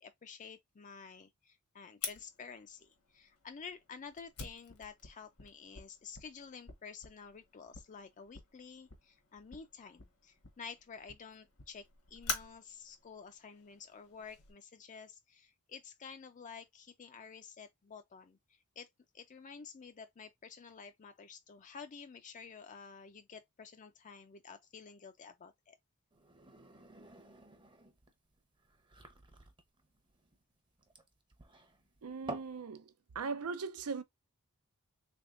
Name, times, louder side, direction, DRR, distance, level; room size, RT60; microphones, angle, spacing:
voice 1, 0.0-18.9 19.1-25.8, left 6 dB, 35° left, 0.4 m, -51 dB
Fire, 2.0-14.5, left 6 dB, 75° left, 1.2 m, -47 dB
sound 1, 26.1-32.6, right 2 dB, 20° right, 0.8 m, -51 dB
voice 2, 32.0-32.9 33.1-34.0, right 5 dB, 70° right, 0.6 m, -39 dB
3.6 x 3.5 x 2.5 m
head